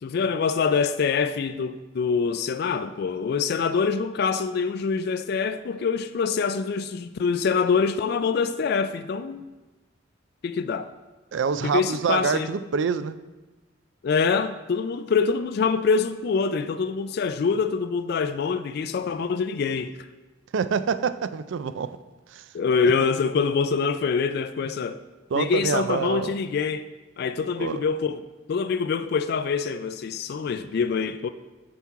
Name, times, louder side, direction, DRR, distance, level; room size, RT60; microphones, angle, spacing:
voice 1, 0.0-9.5 10.4-10.9 11.6-12.5 14.0-20.1 22.5-25.0 25.3-26.9 27.2-28.2 28.5-31.3, left 5 dB, 55° left, 0.3 m, -25 dB
voice 2, 11.3-13.1 20.5-22.0 22.3-22.5 22.8-22.9 25.3-26.4 27.6-27.8, right 6 dB, 70° right, 0.4 m, -26 dB
8.1 x 5.9 x 4.7 m
head